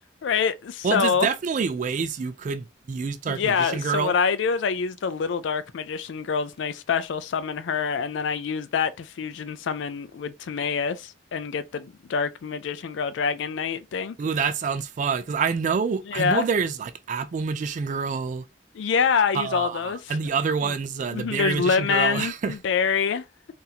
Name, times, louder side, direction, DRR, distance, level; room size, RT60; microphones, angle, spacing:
voice 1, 0.2-1.3 3.3-14.2 16.1-16.5 18.7-20.2 20.6-20.7 21.1-23.2, left 6 dB, 90° left, 0.4 m, -26 dB
voice 2, 0.8-4.1 14.2-18.4 19.3-22.5, right 5 dB, 45° right, 0.3 m, -27 dB
3.9 x 2.6 x 2.8 m
head